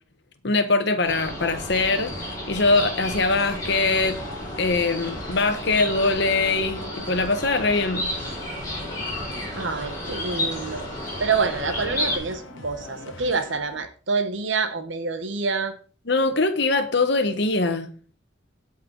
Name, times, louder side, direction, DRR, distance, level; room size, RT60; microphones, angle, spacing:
voice 1, 0.4-2.1 2.5-4.2 4.6-8.1 16.1-17.9, left 3 dB, 60° left, 1.2 m, -22 dB
sound 1, 1.0-13.9, equal, 35° right, 3.3 m, -47 dB
sound 2, 1.1-12.2, left 1 dB, 20° left, 5.8 m, -32 dB
sound 3, 1.6-13.6, left 3 dB, 80° left, 1.4 m, -43 dB
voice 2, 9.5-10.9 11.2-15.7, right 4 dB, 70° right, 1.1 m, -27 dB
16.5 x 5.5 x 3.9 m
head